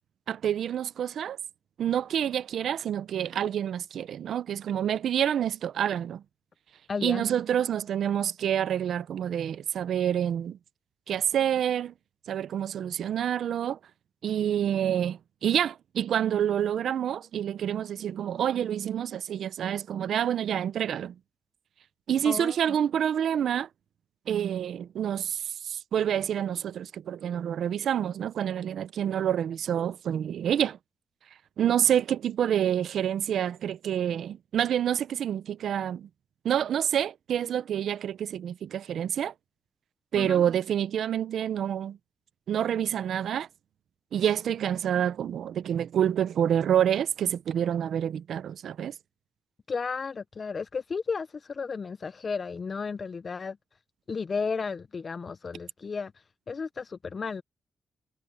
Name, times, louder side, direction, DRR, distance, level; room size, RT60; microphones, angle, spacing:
voice 1, 0.3-1.4 1.8-6.2 7.0-10.6 11.1-11.9 12.3-13.8 14.2-21.1 22.1-23.7 24.3-30.8 31.6-36.1 36.4-39.3 40.1-42.0 42.5-43.5 44.1-48.9, right 9 dB, 85° right, 0.6 m, -27 dB
voice 2, 6.9-7.2 22.2-22.6 40.2-40.4 49.7-53.6 54.1-57.4, left 5 dB, 45° left, 0.5 m, -33 dB
cardioid pair, 90°, 0 cm